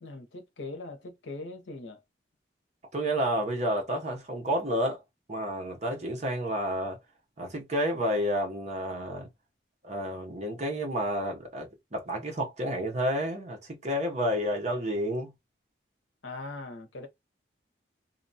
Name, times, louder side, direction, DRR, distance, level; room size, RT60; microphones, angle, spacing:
voice 1, 0.0-2.0 16.2-17.1, left 2 dB, 85° left, 0.7 m, -41 dB
voice 2, 2.9-5.0 5.3-7.0 7.4-9.3 9.8-15.3, equal, 40° right, 0.9 m, -30 dB
2.7 x 2.2 x 2.6 m
head